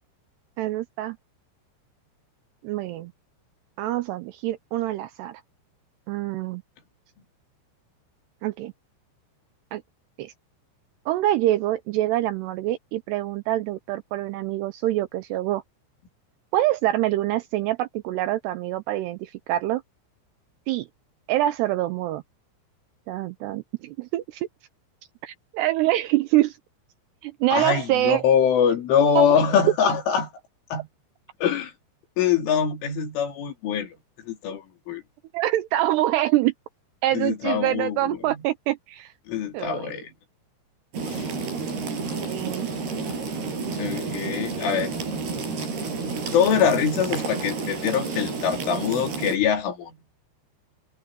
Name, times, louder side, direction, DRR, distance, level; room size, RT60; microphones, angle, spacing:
voice 1, 0.6-1.2 2.6-3.1 3.8-5.4 6.1-6.6 8.4-8.7 9.7-9.8 10.2-10.3 11.1-15.6 16.5-19.8 20.7-20.9 21.3-22.2 23.1-24.5 25.2-26.6 27.2-28.3 29.2-29.3 35.3-36.5 37.0-39.1 39.5-40.0 41.4-42.7, right 15 dB, 85° right, 2.5 m, -25 dB
voice 2, 27.5-30.3 30.7-30.9 31.4-31.7 32.2-34.0 34.3-35.0 37.1-38.4 39.3-40.1 41.1-41.3 43.8-44.9 46.1-50.0, left 7 dB, 85° left, 5.9 m, -23 dB
sound 1, 40.9-49.4, right 4 dB, 55° right, 8.6 m, -30 dB
omnidirectional pair, 5.5 m